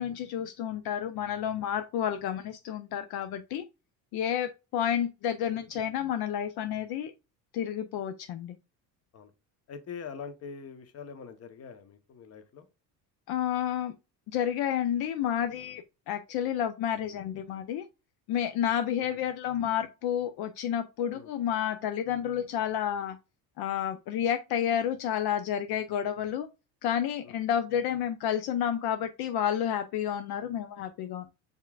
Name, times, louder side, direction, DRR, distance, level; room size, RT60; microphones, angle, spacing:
voice 1, 0.0-3.7 4.1-7.1 7.5-8.6 13.3-13.9 14.3-17.9 18.3-23.2 23.6-26.5 26.8-31.3, left 9 dB, 65° left, 0.6 m, -30 dB
voice 2, 9.7-12.7 19.0-19.1 21.1-21.3 27.2-27.3, left 6 dB, 35° left, 0.9 m, -43 dB
5.4 x 3.6 x 2.3 m
cardioid pair, 135°, 41 cm